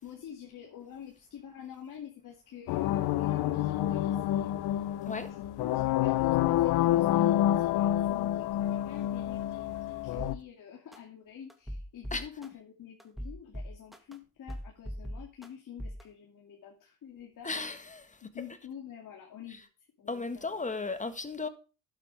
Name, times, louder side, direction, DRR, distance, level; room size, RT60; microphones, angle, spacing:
voice 1, 0.0-4.6 5.3-17.5 18.2-19.7 20.0-20.9, left 9 dB, 55° left, 2.7 m, -47 dB
sound 1, 2.7-10.3, left 13 dB, 70° left, 0.9 m, -28 dB
sound 2, 10.2-10.3 10.9-11.0 11.5-12.5 13.0-14.1 14.5-15.5 15.8-16.0, equal, ahead, 1.9 m, -39 dB
voice 2, 17.4-18.6 19.5-19.6 20.1-21.5, left 3 dB, 20° left, 1.7 m, -36 dB
11.5 x 8.8 x 3.5 m
supercardioid pair, 80°, 39 cm